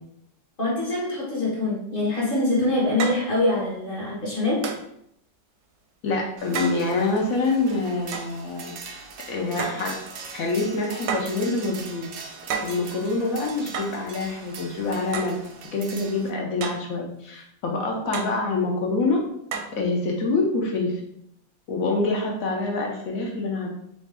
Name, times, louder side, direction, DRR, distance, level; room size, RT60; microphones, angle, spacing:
voice 1, 0.6-4.7, left 2 dB, 35° left, -4 dB, 1.0 m, -24 dB
sound 1, 2.1-2.2 3.0-3.3 4.6-4.9 6.5-6.8 8.1-8.3 9.6-9.9 11.1-11.4 12.5-12.8 13.7-14.0 15.1-15.4 16.6-16.9 18.1-18.4 19.5-19.8, right 6 dB, 75° right, 1.0 m, -31 dB
voice 2, 6.0-9.0 9.3-10.0 10.3-12.1 12.6-15.4 15.7-19.2 19.7-21.0 21.7-23.7, left 3 dB, 65° left, 0 dB, 0.9 m, -26 dB
sound 2, 6.4-16.3, right 4 dB, 90° right, 0.6 m, -41 dB
4.0 x 2.7 x 3.4 m, 0.73 s
omnidirectional pair, 2.0 m